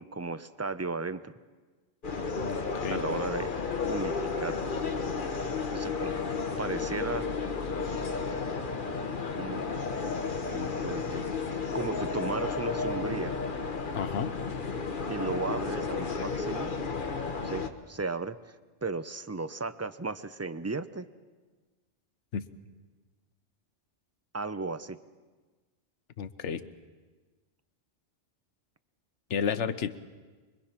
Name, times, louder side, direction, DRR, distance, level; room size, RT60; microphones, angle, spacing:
voice 1, 0.0-1.3 2.9-3.5 3.9-4.8 5.7-7.3 9.4-9.7 10.5-13.4 15.1-16.7 17.4-18.4 18.8-21.1 24.3-25.0, right 3 dB, 20° right, 12 dB, 0.5 m, -35 dB
sound 1, 2.0-17.7, left 4 dB, 45° left, 1.4 m, -32 dB
voice 2, 2.4-3.0 13.9-14.3 22.3-22.5 26.2-26.6 29.3-30.0, left 7 dB, 70° left, 11 dB, 1.3 m, -32 dB
24.5 x 22.5 x 5.9 m, 1.3 s
omnidirectional pair, 1.3 m